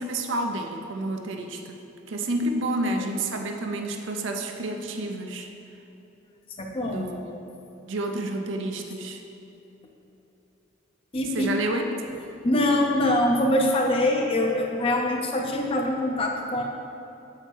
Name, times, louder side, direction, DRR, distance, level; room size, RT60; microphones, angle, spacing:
voice 1, 0.0-1.8 2.1-5.5 6.8-7.3 7.9-9.2 11.3-11.9, right 1 dB, 70° right, 4 dB, 0.5 m, -29 dB
voice 2, 6.6-7.1 11.1-11.6 12.4-16.6, left 1 dB, 30° left, 1 dB, 0.5 m, -24 dB
7.6 x 4.5 x 4.5 m, 3.0 s
head